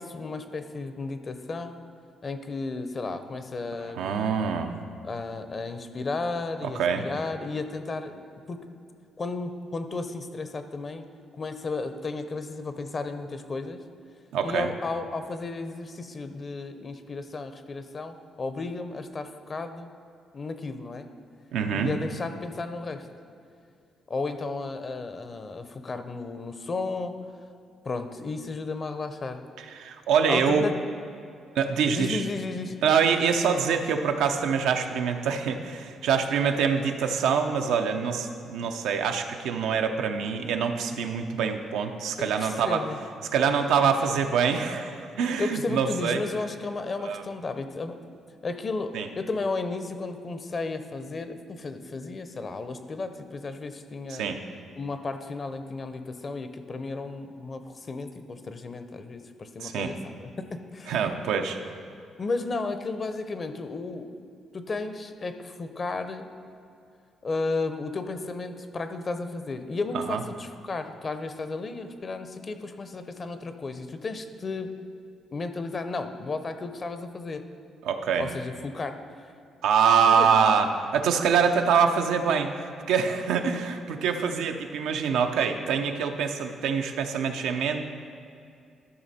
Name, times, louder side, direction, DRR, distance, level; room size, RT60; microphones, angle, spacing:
voice 1, 0.0-1.7 2.2-4.2 5.0-8.6 9.2-11.1 11.3-13.8 14.4-19.9 20.3-21.1 21.7-23.1 24.1-27.1 27.8-29.4 30.3-30.7 31.9-32.8 42.2-43.0 45.4-48.0 48.4-54.3 54.8-61.0 62.2-64.1 64.5-66.3 67.2-74.7 75.3-77.4 78.2-79.0 80.1-80.3, left 3 dB, 40° left, 9 dB, 0.7 m, -33 dB
voice 2, 3.8-4.8 6.6-7.0 14.3-14.7 21.5-22.0 29.6-30.7 31.5-32.2 32.8-42.8 43.3-46.2 47.0-47.2 48.9-49.1 54.1-54.4 59.6-59.9 60.9-61.6 69.9-70.2 77.8-78.3 79.6-87.8, right 6 dB, 90° right, 5 dB, 0.6 m, -25 dB
12.5 x 5.9 x 4.2 m, 2.5 s
cardioid pair, 90°, 0 cm